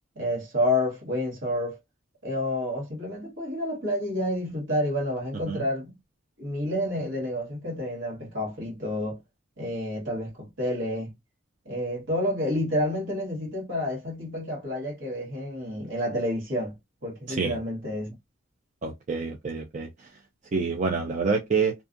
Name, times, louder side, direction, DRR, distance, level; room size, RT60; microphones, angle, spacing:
voice 1, 0.1-1.8 2.2-6.0 6.4-9.2 9.6-11.1 11.6-16.8 17.0-18.1, left 1 dB, 65° right, 1.3 m, -29 dB
voice 2, 18.8-19.9 20.5-21.7, right 5 dB, 35° right, 0.4 m, -27 dB
2.5 x 2.3 x 2.5 m
head